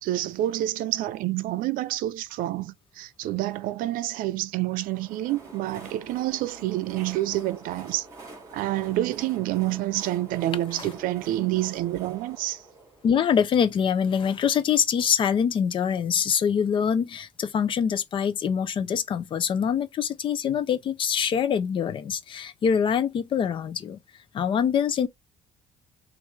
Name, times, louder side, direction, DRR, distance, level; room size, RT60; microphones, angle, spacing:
voice 1, 0.0-8.1 8.5-12.6, right 15 dB, 90° right, 0.5 m, -28 dB
Train, 4.6-14.3, right 2 dB, 20° right, 2.1 m, -47 dB
voice 2, 13.0-24.0 24.3-25.1, left 7 dB, 35° left, 0.5 m, -24 dB
6.2 x 2.5 x 3.3 m
cardioid pair, 175°, 14 cm